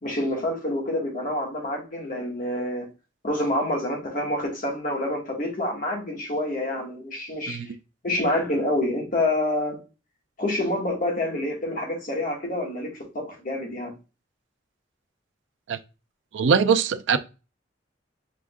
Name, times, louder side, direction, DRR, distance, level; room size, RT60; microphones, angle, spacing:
voice 1, 0.0-2.9 3.2-7.6 8.0-9.8 10.4-13.9, left 1 dB, 50° left, 1.5 m, -27 dB
voice 2, 16.3-17.2, right 6 dB, 75° right, 0.4 m, -21 dB
4.9 x 3.5 x 2.3 m
head